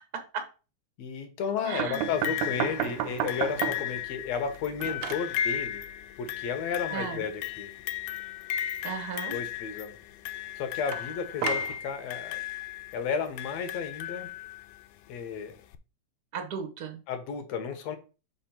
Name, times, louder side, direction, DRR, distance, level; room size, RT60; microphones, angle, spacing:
voice 1, 1.0-5.8 6.2-7.7 9.3-9.9 10.6-12.4 12.9-14.3 15.1-15.6 17.1-18.0, left 6 dB, 65° left, 2.0 m, -33 dB
voice 2, 1.6-2.1 6.9-7.3 8.8-9.3 16.3-17.0, right 6 dB, 65° right, 0.9 m, -35 dB
sound 1, 1.8-4.0 4.4-5.3 10.9-11.8, right 13 dB, 80° right, 1.6 m, -32 dB
sound 2, 1.9-14.8 15.7-15.8, left 11 dB, 90° left, 2.1 m, -35 dB
5.3 x 4.2 x 5.8 m
omnidirectional pair, 3.6 m